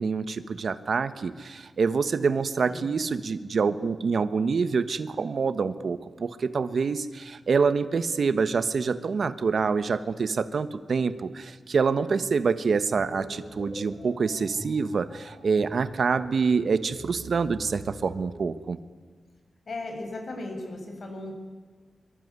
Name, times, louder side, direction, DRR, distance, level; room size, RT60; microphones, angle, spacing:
voice 1, 0.0-18.8, right 5 dB, 65° right, 12 dB, 1.3 m, -26 dB
sound 1, 12.9-18.2, equal, 15° left, 8.0 m, -44 dB
voice 2, 19.7-21.3, left 2 dB, 60° left, 3 dB, 7.5 m, -36 dB
24.5 x 24.5 x 9.7 m, 1.5 s
wide cardioid pair, 130°, 0 cm